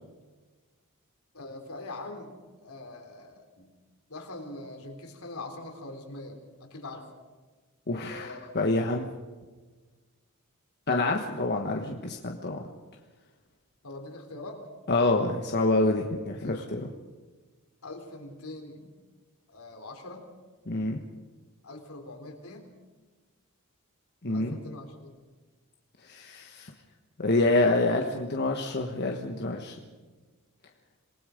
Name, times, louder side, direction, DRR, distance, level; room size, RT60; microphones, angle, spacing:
voice 1, 1.3-2.3 2.6-3.7 4.1-7.1 8.1-8.4 13.8-14.6 16.4-16.7 17.8-18.9 19.5-20.3 21.6-22.7 24.3-25.2, left 2 dB, 75° left, 3 dB, 3.7 m, -42 dB
voice 2, 7.9-9.1 10.9-12.6 14.9-16.9 20.7-21.0 24.2-24.6 26.1-26.7 27.2-29.8, left 2 dB, 50° left, 2 dB, 1.4 m, -27 dB
27.5 x 19.5 x 5.2 m, 1.3 s
head